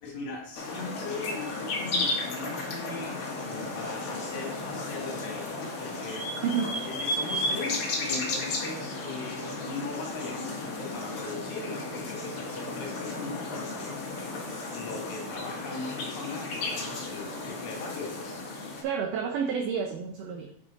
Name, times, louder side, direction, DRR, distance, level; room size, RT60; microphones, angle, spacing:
voice 1, 0.0-6.3 6.8-14.1 14.7-18.3 18.6-18.8, left 3 dB, 80° left, 1 dB, 2.9 m, -39 dB
sound 1, 0.5-18.8, left 2 dB, 55° left, 2.1 m, -34 dB
voice 2, 6.4-6.8 18.8-20.5, right 6 dB, 75° right, 3 dB, 1.6 m, -30 dB
8.1 x 4.8 x 4.0 m, 0.67 s
omnidirectional pair, 3.3 m